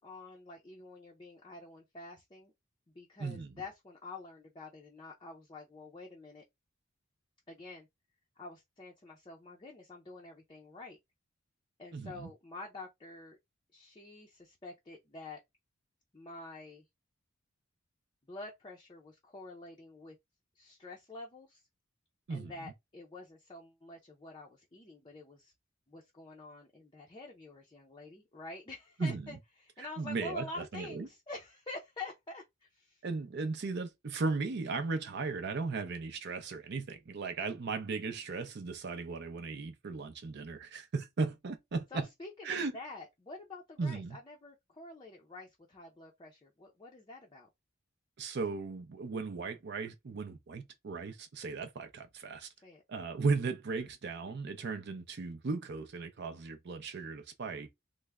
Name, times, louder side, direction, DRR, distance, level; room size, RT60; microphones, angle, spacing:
voice 1, 0.0-2.5 2.9-6.4 7.5-7.9 8.4-11.0 11.8-13.4 13.7-15.4 16.1-16.8 18.3-20.2 20.6-21.6 22.3-25.5 25.9-33.0 41.9-47.5 52.6-52.8, left 2 dB, 25° left, 0.5 m, -48 dB
voice 2, 3.2-3.6 11.9-12.3 22.3-22.7 29.0-29.4 29.8-31.1 33.0-42.1 42.4-42.8 43.8-44.2 48.2-52.5 52.9-57.7, right 4 dB, 55° right, 0.5 m, -36 dB
3.3 x 2.1 x 3.4 m
head